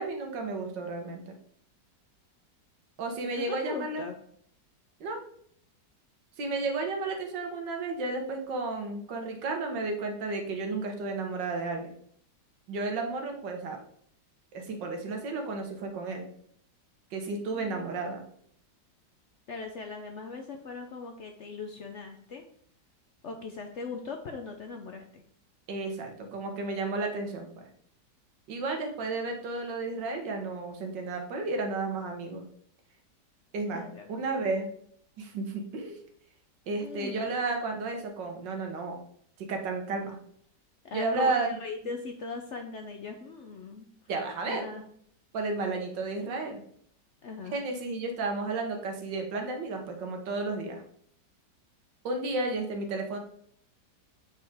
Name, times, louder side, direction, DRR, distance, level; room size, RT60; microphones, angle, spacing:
voice 1, 0.0-1.3 3.0-4.0 5.0-5.2 6.4-11.9 12.7-13.8 14.5-16.3 17.1-18.2 25.7-27.7 28.5-32.5 33.5-33.8 34.1-34.7 35.2-36.0 36.7-39.0 39.4-40.2 40.9-41.5 44.1-44.6 45.3-46.6 47.5-50.8 52.0-53.2, right 3 dB, 90° right, 4 dB, 1.8 m, -32 dB
voice 2, 3.4-4.2 17.5-17.9 19.5-22.4 23.2-25.2 33.7-34.1 36.8-37.4 40.8-43.9 44.5-44.8 47.2-47.6, left 4 dB, 65° left, 4 dB, 0.7 m, -39 dB
8.0 x 4.7 x 3.5 m, 0.64 s
omnidirectional pair, 1.9 m